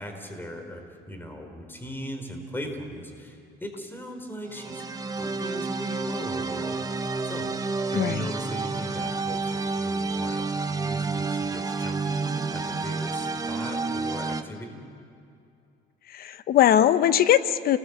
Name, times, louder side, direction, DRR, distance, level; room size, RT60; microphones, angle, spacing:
voice 1, 0.0-7.5 7.9-14.8, equal, 10° left, 5 dB, 4.4 m, -39 dB
sound 1, 4.5-14.4, right 3 dB, 20° right, 1.2 m, -30 dB
voice 2, 7.9-8.3 16.1-17.8, left 11 dB, 60° left, 12 dB, 1.1 m, -21 dB
29.5 x 20.0 x 8.2 m, 2.5 s
cardioid pair, 110°, 17 cm